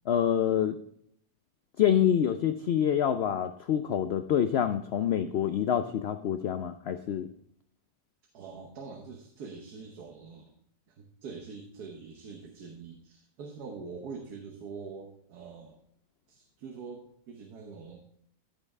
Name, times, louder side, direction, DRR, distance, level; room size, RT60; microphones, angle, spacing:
voice 1, 0.1-0.8 1.8-7.3, left 9 dB, 85° left, 10 dB, 0.5 m, -26 dB
voice 2, 8.3-10.5 10.9-15.8 16.3-18.0, right 5 dB, 80° right, 2 dB, 1.6 m, -44 dB
14.0 x 5.5 x 3.6 m, 0.67 s
omnidirectional pair, 1.6 m